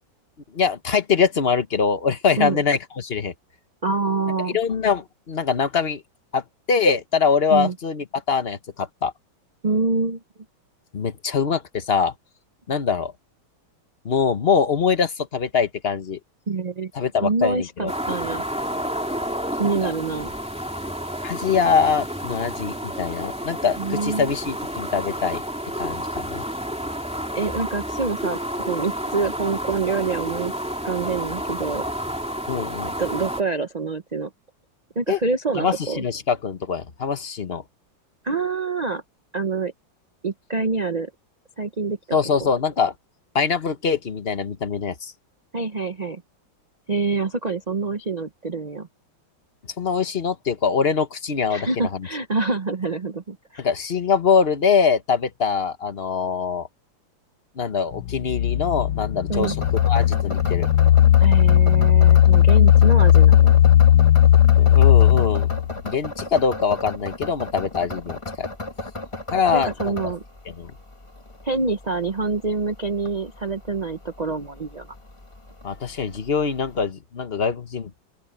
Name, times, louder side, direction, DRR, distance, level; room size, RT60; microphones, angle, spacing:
voice 1, 0.5-3.3 4.5-6.0 6.3-9.1 10.9-12.1 12.7-13.1 14.0-16.2 16.9-17.9 19.8-19.9 21.2-25.4 25.8-26.4 32.5-32.9 35.1-35.2 35.5-37.6 42.1-42.9 43.3-45.1 49.8-52.1 53.6-56.7 57.6-59.6 59.9-60.7 64.6-65.5 65.8-68.5 69.3-70.0 70.5-70.7 75.6-77.9, left 6 dB, 35° left, 1.2 m, -23 dB
voice 2, 3.8-4.6 7.5-7.7 9.6-10.2 16.5-16.9 17.2-18.4 19.6-20.3 23.8-24.3 27.3-30.5 30.8-31.8 33.0-34.3 35.0-36.0 38.2-39.0 39.3-39.7 40.2-41.1 41.6-42.2 45.5-46.2 46.9-48.9 51.5-53.6 59.3-59.6 61.2-63.6 69.5-70.2 71.4-74.9, right 4 dB, 70° right, 0.4 m, -26 dB
sound 1, 17.9-33.4, equal, 5° right, 2.5 m, -30 dB
sound 2, 57.9-65.7, left 11 dB, 85° left, 1.4 m, -15 dB
sound 3, 59.3-76.9, left 2 dB, 15° left, 1.4 m, -35 dB
open air
omnidirectional pair, 2.1 m